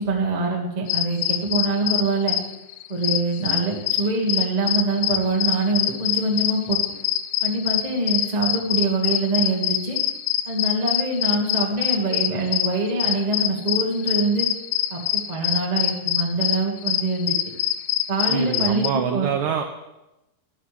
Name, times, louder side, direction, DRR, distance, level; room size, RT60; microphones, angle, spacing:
voice 1, 0.0-2.4 2.9-6.8 7.4-10.0 10.5-14.5 14.9-17.4 18.1-19.3, right 2 dB, 50° right, -2 dB, 0.5 m, -24 dB
sound 1, 0.9-18.9, left 13 dB, 90° left, 2.4 m, -25 dB
voice 2, 18.3-19.6, right 8 dB, 85° right, 4 dB, 1.6 m, -25 dB
13.5 x 11.0 x 3.3 m, 0.96 s
omnidirectional pair, 4.1 m